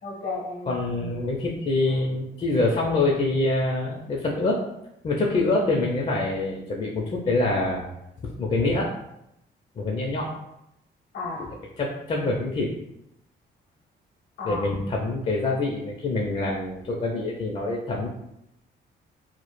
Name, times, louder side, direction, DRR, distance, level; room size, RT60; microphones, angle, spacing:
voice 1, 0.0-1.3 5.6-5.7 11.1-11.5 14.4-14.7, left 3 dB, 70° left, -1 dB, 0.7 m, -34 dB
voice 2, 0.7-4.6 5.0-7.8 8.2-8.9 9.8-10.3 11.8-12.7 14.4-18.1, left 2 dB, 35° left, -2 dB, 0.4 m, -25 dB
2.0 x 2.0 x 3.0 m, 0.83 s
cardioid pair, 90°, 20 cm